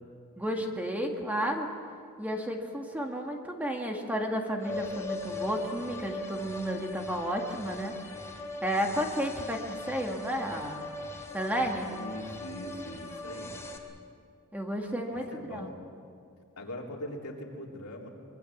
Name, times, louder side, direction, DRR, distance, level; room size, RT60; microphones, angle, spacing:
voice 1, 0.4-1.7 2.2-8.0 8.6-10.9 11.3-11.9 14.5-15.7, equal, 5° right, 1 dB, 2.0 m, -32 dB
sound 1, 4.6-13.8, left 2 dB, 15° left, 2.7 m, -40 dB
voice 2, 11.7-13.6 15.1-15.8 16.6-18.1, left 1 dB, 80° left, 0 dB, 3.5 m, -41 dB
24.5 x 22.5 x 7.3 m, 2.3 s
head